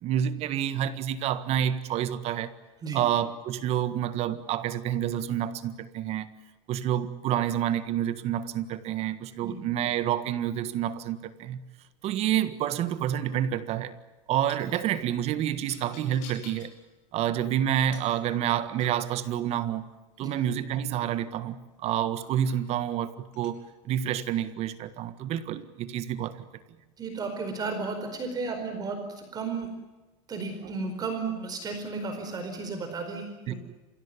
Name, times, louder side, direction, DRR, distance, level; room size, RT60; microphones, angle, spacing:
voice 1, 0.0-2.5 2.9-6.3 6.7-11.6 12.0-14.0 14.3-16.7 17.1-19.9 20.2-23.6 23.8-26.4 30.6-30.7 33.5-33.6, right 10 dB, 40° right, 1.6 m, -28 dB
sound 1, 12.5-12.9 14.5-14.9 15.6-16.8 17.9-18.2 18.8-19.1 21.5-21.6 22.2-22.6 23.3-23.6, left 6 dB, 50° left, 6.7 m, -49 dB
voice 2, 27.0-29.7 30.3-33.6, right 4 dB, 25° right, 4.7 m, -33 dB
29.0 x 17.0 x 9.9 m
supercardioid pair, 135°, 16 cm